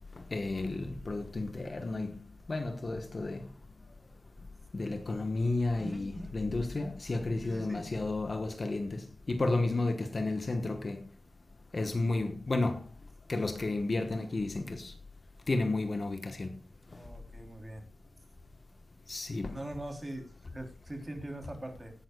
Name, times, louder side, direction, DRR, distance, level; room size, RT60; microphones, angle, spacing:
voice 1, 0.3-2.2 2.5-3.4 4.7-11.0 11.7-12.8 13.3-14.9 15.5-16.5 19.1-19.6, left 2 dB, 35° left, 1.2 m, -32 dB
voice 2, 5.8-6.3 7.4-7.8 16.9-17.8 19.5-21.9, right 1 dB, 15° right, 3.4 m, -42 dB
17.5 x 11.5 x 2.3 m
wide cardioid pair, 110°, 0 cm